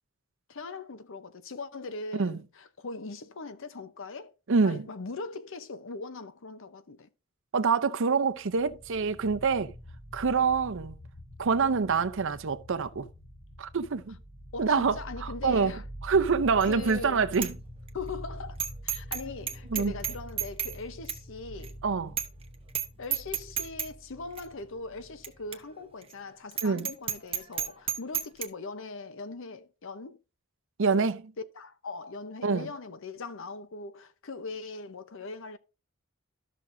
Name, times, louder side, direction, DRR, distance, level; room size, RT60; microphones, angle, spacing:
voice 1, 0.5-4.3 4.6-7.1 14.5-15.8 16.6-17.2 17.9-21.8 23.0-30.2 31.5-35.6, left 3 dB, 65° left, 0.8 m, -40 dB
voice 2, 4.5-4.9 7.5-9.7 10.1-11.0 11.4-13.1 13.6-14.2 14.6-15.7 16.0-17.5 19.7-19.9 21.8-22.2 26.6-26.9 30.8-31.3 32.4-32.7, right 5 dB, 65° right, 0.6 m, -26 dB
sound 1, 8.3-25.6, equal, 15° left, 2.5 m, -45 dB
Bicycle bell, 16.6-16.9 17.3-17.5 17.9-18.0 18.6-19.2 19.5-20.8 21.1-21.2 21.6-21.7 22.2-22.4 22.7-22.9 23.1-23.9 24.4-24.5 25.2-25.3 25.5-25.6 26.0-26.1 26.5-28.5, right 9 dB, 25° right, 0.9 m, -31 dB
13.5 x 6.0 x 2.6 m
head